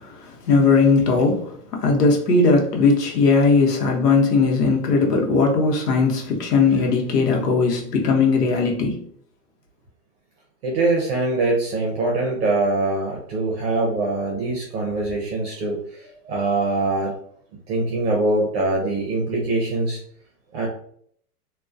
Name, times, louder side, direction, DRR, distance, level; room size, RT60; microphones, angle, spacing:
voice 1, 0.0-9.0, left 4 dB, 85° left, 0.9 m, -19 dB
voice 2, 10.6-17.1 17.7-20.0 20.5-20.7, right 2 dB, 40° right, 0.7 m, -23 dB
2.2 x 2.2 x 2.4 m
hypercardioid pair, 135°, 46 cm